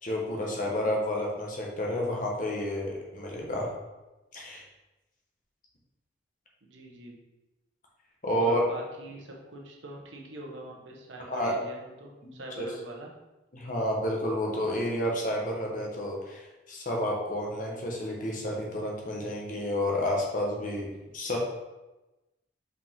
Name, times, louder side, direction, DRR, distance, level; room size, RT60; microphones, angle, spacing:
voice 1, 0.0-3.7 4.3-4.6 8.2-8.6 11.3-11.6 12.2-12.7 13.5-20.9 21.1-21.4, left 1 dB, 45° left, -2 dB, 1.4 m, -30 dB
voice 2, 0.6-0.9 6.6-7.1 8.3-13.1 21.0-21.1, right 1 dB, 85° right, -1 dB, 1.2 m, -43 dB
5.2 x 5.2 x 3.7 m, 1.1 s
head